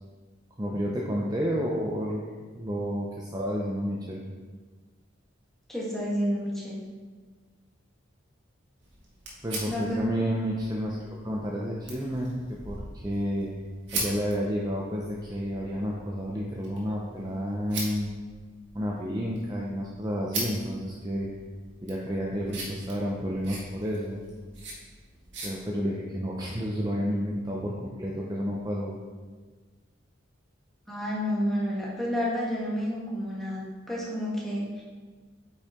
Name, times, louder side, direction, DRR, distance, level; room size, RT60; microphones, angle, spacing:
voice 1, 0.6-2.3 2.6-4.2 9.4-13.5 13.9-18.1 18.7-21.3 21.8-24.2 25.4-29.0, equal, 20° right, -3 dB, 0.6 m, -30 dB
voice 2, 5.7-6.8 9.7-9.8 26.5-26.6 30.9-34.8, equal, ahead, -6 dB, 1.6 m, -30 dB
sound 1, 8.8-25.5, right 2 dB, 65° right, 1.9 m, -41 dB
8.5 x 5.5 x 3.6 m, 1.4 s
head